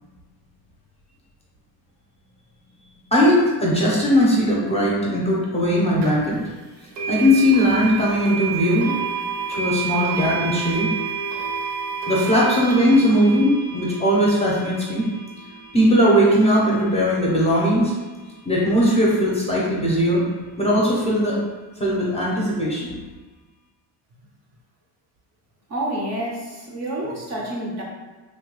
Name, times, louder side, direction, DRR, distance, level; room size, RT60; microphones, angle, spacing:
voice 1, 3.1-6.4 7.1-8.9 9.5-10.9 12.1-15.0 15.7-17.9 18.4-20.3 20.6-21.4 21.8-22.9, equal, 15° left, -5 dB, 0.5 m, -19 dB
sound 1, 6.0-6.1 6.9-17.9, right 6 dB, 85° right, 0.8 m, -30 dB
voice 2, 25.7-27.8, right 1 dB, 40° right, -2 dB, 0.5 m, -28 dB
3.1 x 2.2 x 3.0 m, 1.3 s
cardioid pair, 145°, 42 cm